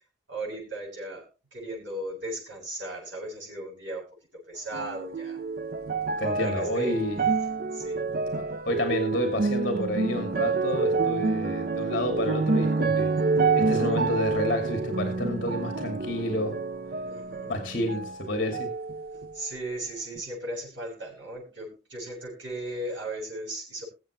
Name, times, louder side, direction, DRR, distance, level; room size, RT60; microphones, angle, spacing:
voice 1, 0.3-1.2 1.5-4.1 4.5-5.4 6.2-7.0 7.6-8.0 17.0-17.6 19.3-23.9, right 1 dB, 70° right, 7.3 m, -36 dB
sound 1, 4.7-18.2 18.5-19.5 20.2-20.3, right 4 dB, 50° right, 0.5 m, -28 dB
voice 2, 6.2-7.2 8.4-13.1 13.5-16.6 17.5-18.7, left 1 dB, 50° left, 2.5 m, -30 dB
22.0 x 7.6 x 3.1 m
head